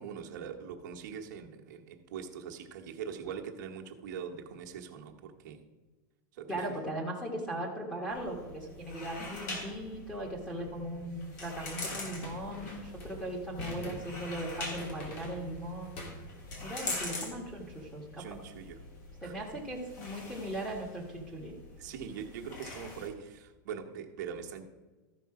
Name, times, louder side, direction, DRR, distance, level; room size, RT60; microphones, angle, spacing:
voice 1, 0.0-5.6 6.3-6.8 16.8-17.4 18.2-18.8 19.2-19.6 21.8-24.6, right 7 dB, 60° right, 3 dB, 1.2 m, -43 dB
voice 2, 6.5-16.0 16.6-18.2 19.2-21.5, right 1 dB, 10° left, -5 dB, 1.3 m, -38 dB
sound 1, 8.1-23.1, left 2 dB, 60° left, 3.0 m, -44 dB
sound 2, 11.9-16.9, left 1 dB, 45° left, 2.7 m, -46 dB
13.5 x 5.3 x 4.8 m, 1.3 s
supercardioid pair, 160°, 11 cm